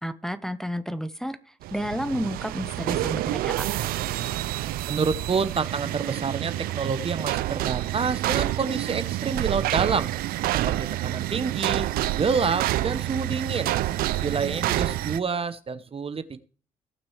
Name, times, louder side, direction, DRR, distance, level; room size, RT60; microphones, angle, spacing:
voice 1, 0.0-1.4 1.7-3.7, equal, 5° left, 11 dB, 0.8 m, -31 dB
sound 1, 1.6-15.2, right 15 dB, 75° right, 0.4 m, -28 dB
voice 2, 4.9-10.1 10.5-11.9 12.2-13.7 14.2-16.4, right 5 dB, 40° right, 13 dB, 0.8 m, -28 dB
17.5 x 6.0 x 3.2 m, 0.39 s
supercardioid pair, 55°, 15 cm